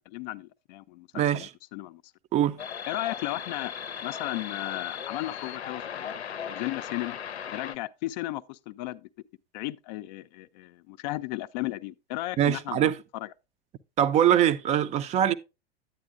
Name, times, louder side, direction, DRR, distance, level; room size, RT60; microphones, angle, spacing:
voice 1, 0.1-2.0 2.9-3.7 4.0-6.1 6.4-7.2 7.5-9.1 9.5-13.3, left 17 dB, 45° left, 0.5 m, -35 dB
voice 2, 1.1-1.5 2.3-2.6 12.4-13.0 14.0-15.3, right 10 dB, 20° right, 0.4 m, -23 dB
sound 1, 2.6-7.8, left 8 dB, 85° left, 0.6 m, -37 dB
9.6 x 8.9 x 2.4 m
hypercardioid pair, 100°, 32 cm